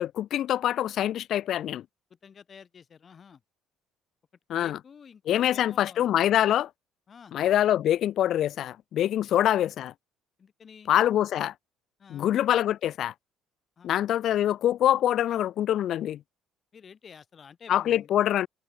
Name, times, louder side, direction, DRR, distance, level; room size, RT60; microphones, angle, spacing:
voice 1, 0.0-1.8 4.5-4.8 5.3-6.7 7.3-9.9 10.9-11.5 12.1-13.1 13.8-16.2 17.7-18.5, left 11 dB, 60° left, 0.4 m, -25 dB
voice 2, 2.2-3.4 4.6-6.1 7.1-7.3 9.2-9.3 10.4-10.9 12.0-12.3 13.8-13.9 16.7-18.1, left 6 dB, 40° left, 3.8 m, -50 dB
hypercardioid pair, 65°, 0 cm